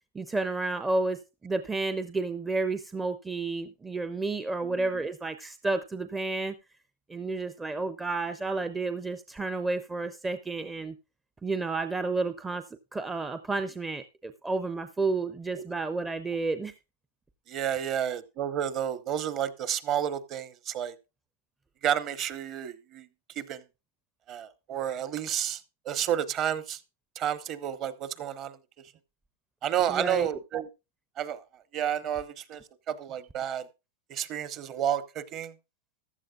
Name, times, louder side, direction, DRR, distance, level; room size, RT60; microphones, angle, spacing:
voice 1, 0.1-6.5 7.1-11.0 11.4-12.6 12.9-16.7 17.7-17.8 29.9-30.3, right 3 dB, 10° right, 0.5 m, -31 dB
voice 2, 17.5-20.9 21.8-23.1 23.4-23.6 24.3-26.8 27.2-28.6 29.6-30.7 31.2-31.4 31.7-32.6 32.9-33.7 34.1-35.5, right 9 dB, 30° right, 0.9 m, -31 dB
14.5 x 11.5 x 2.4 m
supercardioid pair, 150°, 0 cm